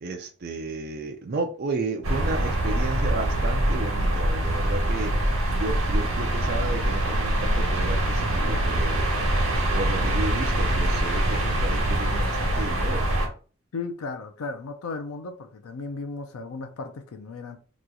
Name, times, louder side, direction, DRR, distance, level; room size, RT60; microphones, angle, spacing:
voice 1, 0.0-5.1 5.5-9.0 9.7-13.1, right 3 dB, 45° right, 0.4 m, -32 dB
sound 1, 2.0-13.3, right 1 dB, 75° right, 1.0 m, -24 dB
voice 2, 13.7-17.6, left 3 dB, 85° left, 0.5 m, -35 dB
2.9 x 2.3 x 3.8 m
head